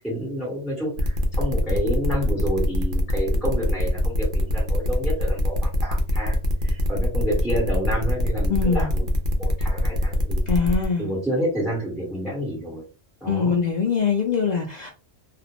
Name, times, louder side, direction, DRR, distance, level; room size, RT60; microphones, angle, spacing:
voice 1, 0.0-6.4 6.6-9.1 9.3-10.5 11.0-12.8 13.2-13.6, equal, ahead, -4 dB, 0.8 m, -29 dB
sound 1, 1.0-10.8, left 1 dB, 55° right, 0.7 m, -24 dB
voice 2, 8.5-8.9 10.5-11.1 13.3-14.9, left 5 dB, 80° left, -1 dB, 0.3 m, -23 dB
2.4 x 2.0 x 2.9 m, 0.33 s
omnidirectional pair, 1.3 m